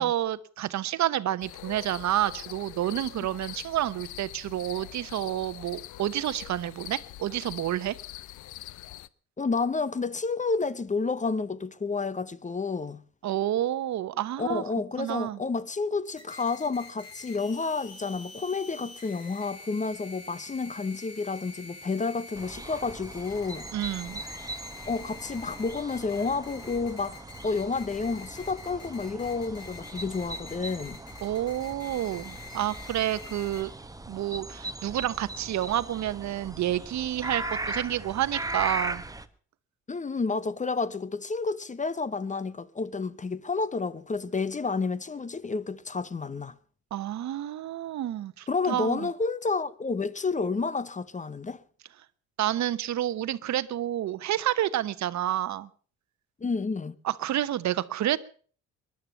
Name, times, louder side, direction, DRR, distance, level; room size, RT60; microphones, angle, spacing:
voice 1, 0.0-8.0 13.2-14.6 15.0-15.4 23.7-24.2 31.2-33.7 34.1-39.0 46.9-49.1 52.4-55.7 57.0-58.2, right 12 dB, 60° right, 0.9 m, -29 dB
sound 1, 1.4-9.1, left 15 dB, 65° left, 0.7 m, -43 dB
voice 2, 9.4-13.0 14.4-23.7 24.9-31.0 39.9-46.5 48.5-51.6 56.4-56.9, left 4 dB, 25° left, 0.8 m, -30 dB
sound 2, 16.2-33.6, left 4 dB, 50° left, 5.1 m, -47 dB
sound 3, 22.4-39.3, right 2 dB, 10° right, 1.2 m, -39 dB
19.5 x 11.5 x 5.7 m
supercardioid pair, 65°, 32 cm